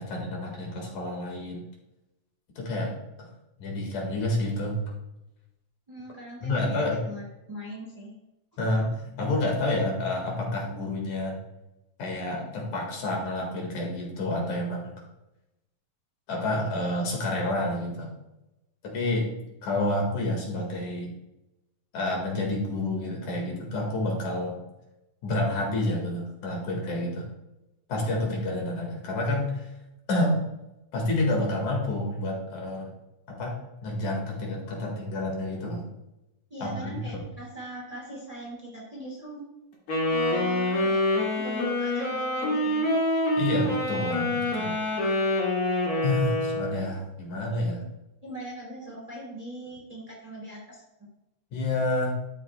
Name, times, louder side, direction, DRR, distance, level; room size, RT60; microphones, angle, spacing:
voice 1, 0.0-1.7 2.6-2.9 3.2-3.3 3.6-4.8 6.4-7.0 8.6-11.4 12.0-14.9 16.3-18.1 18.8-19.3 19.6-21.1 21.9-24.6 25.2-27.3 27.9-29.7 30.1-30.4 30.9-32.9 33.3-35.8 36.6-37.2 43.4-44.8 46.0-47.9 51.5-52.1, left 1 dB, 70° left, 0 dB, 3.1 m, -29 dB
voice 2, 5.9-8.1 36.5-39.4 40.1-41.0 41.4-42.9 48.2-50.8, right 1 dB, 15° right, -3 dB, 2.1 m, -40 dB
Wind instrument woodwind instrument, 39.9-46.8, left 1 dB, 45° left, 2.9 m, -26 dB
12.5 x 7.2 x 2.2 m, 0.94 s
omnidirectional pair, 3.6 m